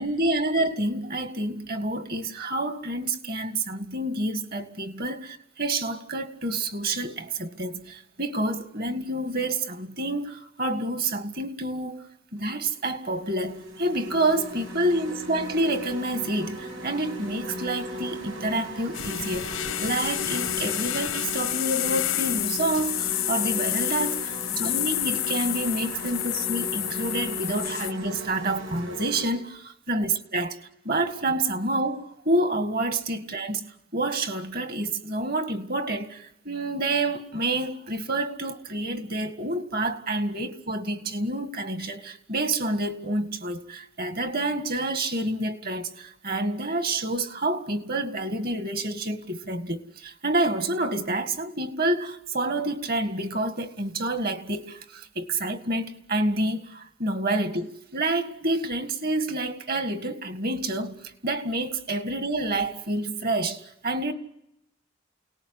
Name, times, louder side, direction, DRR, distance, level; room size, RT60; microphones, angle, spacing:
voice 1, 0.0-12.0 12.3-30.6 30.8-64.1, right 2 dB, 50° right, 1.9 m, -28 dB
sound 1, 12.4-12.5 13.1-29.3, equal, 85° right, 6.4 m, -38 dB
sound 2, 18.9-27.9, left 14 dB, 90° left, 1.0 m, -29 dB
29.0 x 19.0 x 9.7 m
head